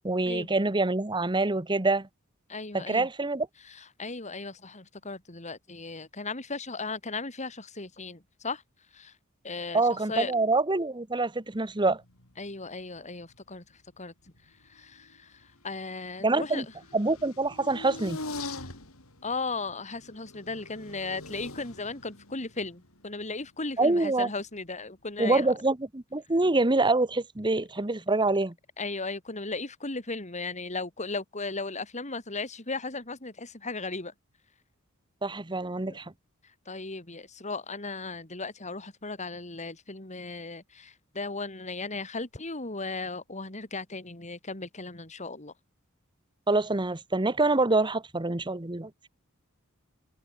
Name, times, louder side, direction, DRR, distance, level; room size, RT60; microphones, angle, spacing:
voice 1, 0.0-2.1 2.7-3.5 9.7-12.0 16.2-16.6 16.9-18.2 23.8-24.3 25.2-28.5 35.2-36.1 46.5-48.9, right 2 dB, 20° right, 1.2 m, -26 dB
voice 2, 2.5-3.1 3.6-8.6 8.9-9.2 9.4-10.3 12.4-16.7 18.5-18.7 19.2-25.5 28.8-34.1 35.8-36.0 36.4-45.5, left 3 dB, 35° left, 3.6 m, -36 dB
sound 1, 11.7-12.7 13.0-13.9 14.2-24.6 25.2-25.6, left 2 dB, 80° left, 7.3 m, -44 dB
head